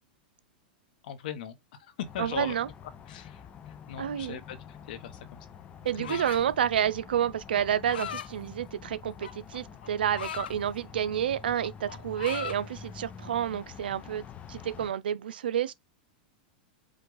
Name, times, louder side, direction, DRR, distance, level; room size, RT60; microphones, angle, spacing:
voice 1, 1.0-2.6 3.1-5.5 5.9-6.2, left 9 dB, 70° left, 0.9 m, -40 dB
sound 1, 2.0-14.9, left 6 dB, 25° left, 0.6 m, -47 dB
voice 2, 2.2-2.7 4.0-4.4 5.8-15.7, right 9 dB, 90° right, 0.5 m, -29 dB
sound 2, 6.0-6.6 7.6-8.3 9.2-10.5 11.0-11.3 11.6-12.6, left 9 dB, 90° left, 0.5 m, -38 dB
5.1 x 2.3 x 3.9 m
hypercardioid pair, 130°, 5 cm